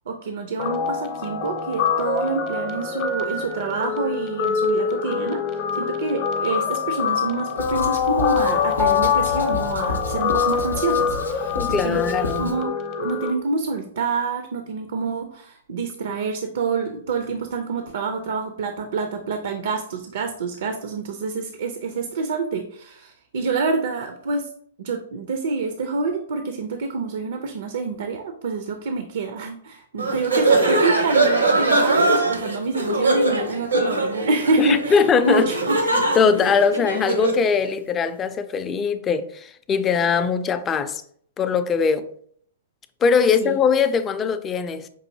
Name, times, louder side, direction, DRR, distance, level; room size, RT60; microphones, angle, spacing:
voice 1, 0.1-5.4 5.7-12.0 12.4-24.5 24.8-35.8 43.4-43.6, right 4 dB, 65° right, 0.4 m, -27 dB
Guitar, 0.6-13.3, left 6 dB, 40° left, 0.7 m, -24 dB
Writing, 7.6-12.6, left 3 dB, 90° left, 0.6 m, -32 dB
voice 2, 11.5-12.5 34.6-35.5 36.2-41.0 41.4-42.1 43.0-44.9, left 6 dB, 20° left, 0.4 m, -21 dB
sound 1, 30.0-37.4, right 2 dB, 90° right, 0.8 m, -21 dB
5.4 x 2.6 x 2.7 m
hypercardioid pair, 115°, 0 cm